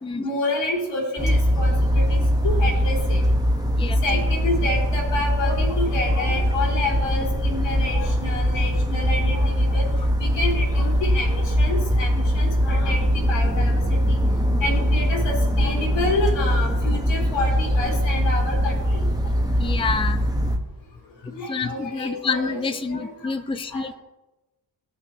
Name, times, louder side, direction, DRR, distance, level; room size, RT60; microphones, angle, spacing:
voice 1, 0.2-3.2 4.0-9.8 10.2-13.8 14.1-14.2 14.6-19.4 21.3-22.6 22.9-23.3 23.7-23.8, left 2 dB, 85° left, -2 dB, 3.0 m, -29 dB
sound 1, 1.2-20.6, equal, 10° right, 1.3 m, -21 dB
voice 2, 19.6-20.3 21.5-23.9, left 4 dB, 10° left, 8 dB, 0.6 m, -28 dB
15.0 x 6.0 x 3.0 m, 1.0 s
supercardioid pair, 45°, 44 cm